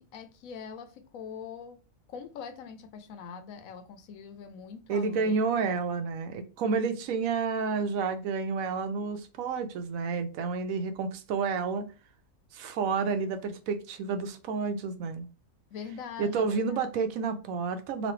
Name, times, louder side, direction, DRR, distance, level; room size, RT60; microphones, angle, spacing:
voice 1, 0.0-1.8 2.1-5.4 15.7-16.9, left 6 dB, 85° left, 1.0 m, -43 dB
voice 2, 4.9-11.8 12.5-15.3 16.2-18.1, right 5 dB, 90° right, 1.0 m, -30 dB
3.1 x 2.5 x 3.0 m
omnidirectional pair, 1.4 m